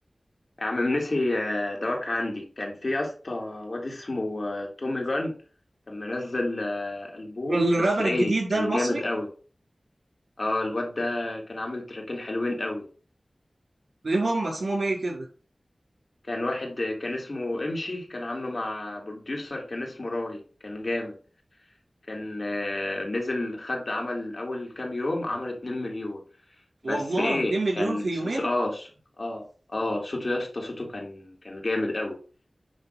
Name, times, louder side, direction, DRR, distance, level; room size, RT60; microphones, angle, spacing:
voice 1, 0.6-5.4 5.9-9.3 10.4-12.9 16.3-21.1 22.1-26.2 26.8-28.9 29.2-32.2, left 2 dB, 55° left, 3.1 m, -30 dB
voice 2, 7.4-9.0 14.0-15.3 26.8-28.5, right 2 dB, 80° right, 4.6 m, -26 dB
10.5 x 3.7 x 5.6 m
wide cardioid pair, 70°, 0 cm